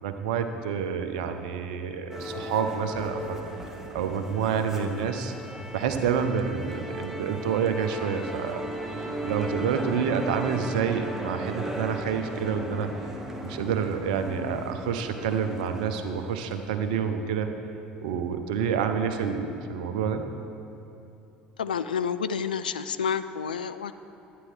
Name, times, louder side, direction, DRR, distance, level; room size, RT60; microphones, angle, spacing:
voice 1, 0.0-3.4 3.9-5.3 5.7-8.6 9.2-13.1 13.4-17.5 18.0-20.2, right 7 dB, 65° right, 8 dB, 0.7 m, -28 dB
Musical instrument, 2.1-16.8, equal, 10° right, 1.1 m, -36 dB
voice 2, 21.6-23.9, left 7 dB, 75° left, 12 dB, 0.3 m, -29 dB
11.5 x 9.2 x 4.7 m, 2.8 s
figure-of-eight pair, 65°, 5 cm